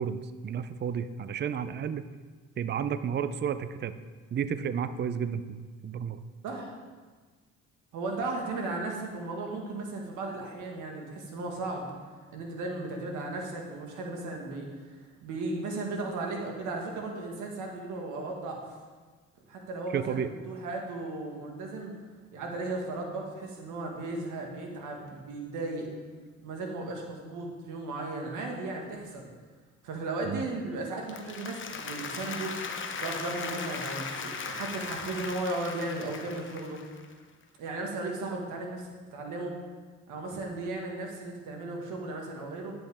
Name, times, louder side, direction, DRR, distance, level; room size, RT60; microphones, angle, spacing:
voice 1, 0.0-2.0 2.6-4.0 4.3-6.2 19.9-20.3 30.2-30.5, right 7 dB, 35° right, 12 dB, 0.5 m, -32 dB
voice 2, 7.9-11.9 12.3-14.8 15.2-18.6 19.5-21.9 22.3-25.9 26.4-29.3 29.8-32.6 33.0-36.8 37.6-39.5 40.1-42.7, right 2 dB, 90° right, 1 dB, 1.7 m, -35 dB
Applause, 30.9-37.1, left 5 dB, 40° left, 0.8 m, -38 dB
10.5 x 7.8 x 3.5 m, 1.4 s
cardioid pair, 90°, 30 cm